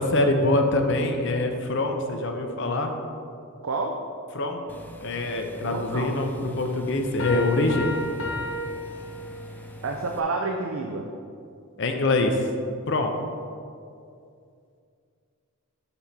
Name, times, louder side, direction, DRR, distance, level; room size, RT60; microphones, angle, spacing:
voice 1, 0.0-2.9 4.3-4.6 5.0-7.9 11.8-12.4 12.9-13.2, left 2 dB, 55° left, 4 dB, 0.7 m, -24 dB
voice 2, 3.6-4.0 5.6-6.2 9.8-11.1, right 3 dB, 65° right, 2 dB, 0.5 m, -29 dB
sound 1, 4.7-10.2, left 2 dB, 10° left, 0.3 m, -44 dB
sound 2, 7.2-9.7, left 1 dB, 80° left, 1.0 m, -33 dB
7.0 x 4.4 x 5.3 m, 2.4 s
head